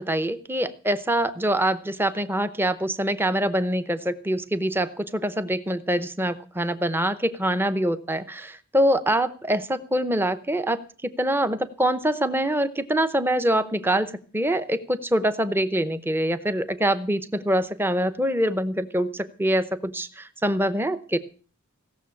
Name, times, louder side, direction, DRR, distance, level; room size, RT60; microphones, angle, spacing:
voice 1, 0.0-21.2, right 1 dB, 10° right, 12 dB, 0.7 m, -24 dB
17.0 x 6.9 x 8.4 m, 0.41 s
head